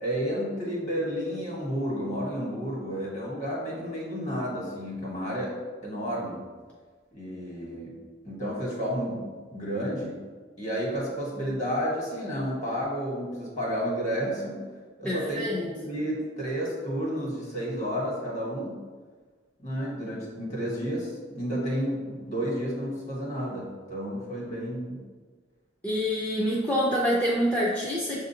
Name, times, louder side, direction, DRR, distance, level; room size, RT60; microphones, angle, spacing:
voice 1, 0.0-5.6 5.8-6.4 7.1-8.0 8.2-10.2 10.6-14.7 15.0-18.7 19.6-25.0, equal, 40° left, -3 dB, 1.3 m, -31 dB
voice 2, 15.0-15.7 25.8-28.2, equal, 5° left, -6 dB, 0.4 m, -26 dB
6.3 x 2.5 x 2.8 m, 1.5 s
head